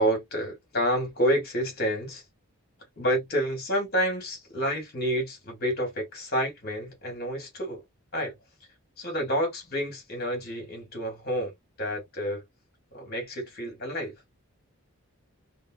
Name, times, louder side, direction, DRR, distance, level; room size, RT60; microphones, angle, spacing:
voice 1, 0.0-2.2 3.0-7.8 8.1-8.3 9.0-12.4 12.9-14.1, equal, 45° left, 1.7 m, -29 dB
3.7 x 2.0 x 2.4 m
head